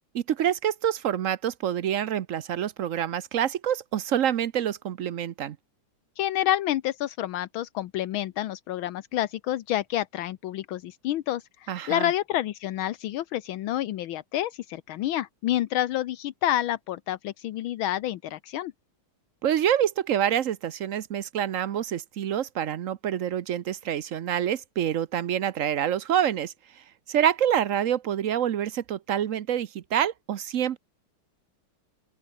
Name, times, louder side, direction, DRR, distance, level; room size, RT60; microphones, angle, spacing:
voice 1, 0.1-5.6 11.7-12.1 19.4-30.8, right 10 dB, 60° right, 0.8 m, -27 dB
voice 2, 6.2-18.7, left 13 dB, 80° left, 1.6 m, -29 dB
open air
omnidirectional pair, 2.2 m